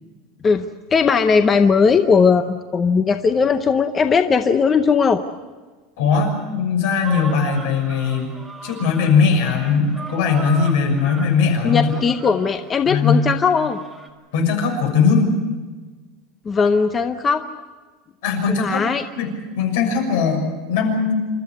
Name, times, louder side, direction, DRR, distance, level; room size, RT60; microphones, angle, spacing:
voice 1, 0.9-5.2 11.6-13.8 16.5-17.4 18.5-19.0, left 5 dB, 15° left, 8 dB, 0.7 m, -18 dB
voice 2, 6.0-8.3 8.6-11.9 12.8-13.2 14.3-15.3 18.2-18.8 19.2-19.3 19.6-21.1, left 5 dB, 65° left, 3 dB, 6.4 m, -19 dB
sound 1, 7.0-14.1, right 2 dB, 5° right, 2.0 m, -37 dB
28.0 x 13.5 x 9.7 m, 1.3 s
supercardioid pair, 180°, 0 cm